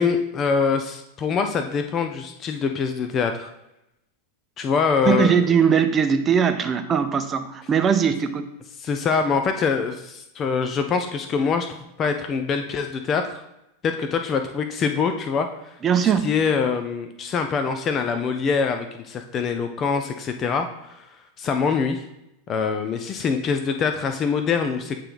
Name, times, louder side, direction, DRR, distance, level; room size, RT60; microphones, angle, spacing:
voice 1, 0.0-3.5 4.6-5.4 8.8-13.4 13.8-22.0 22.5-25.0, left 5 dB, 30° left, 7 dB, 0.5 m, -24 dB
voice 2, 5.0-8.5 15.8-16.3, right 7 dB, 25° right, 8 dB, 0.6 m, -20 dB
8.8 x 3.2 x 3.9 m, 0.88 s
figure-of-eight pair, 90°, 0 cm